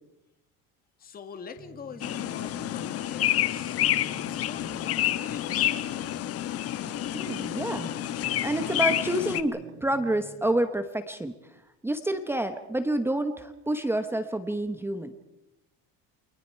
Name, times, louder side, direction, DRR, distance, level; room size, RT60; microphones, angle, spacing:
voice 1, 1.0-5.8, left 6 dB, 25° left, 7 dB, 1.8 m, -44 dB
sound 1, 1.6-10.4, right 6 dB, 30° right, 2.3 m, -50 dB
sound 2, 2.0-9.4, left 13 dB, 40° left, 1.0 m, -29 dB
voice 2, 7.1-7.9 8.4-11.3 11.8-15.1, right 1 dB, 5° right, 8 dB, 1.0 m, -28 dB
29.0 x 24.5 x 4.5 m, 0.89 s
cardioid pair, 165°, 37 cm